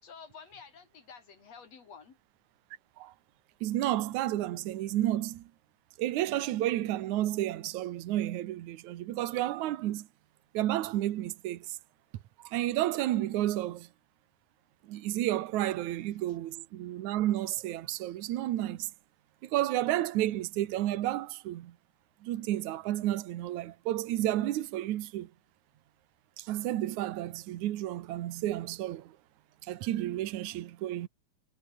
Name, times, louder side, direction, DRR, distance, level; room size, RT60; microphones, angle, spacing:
voice 1, 0.0-2.2, left 6 dB, 60° left, 4.1 m, -50 dB
voice 2, 3.6-5.5 6.0-10.1 10.5-11.8 12.4-13.9 14.9-18.9 19.4-21.7 22.2-25.3 26.4-29.2 29.6-31.1, right 14 dB, 80° right, 2.5 m, -31 dB
omnidirectional pair, 3.4 m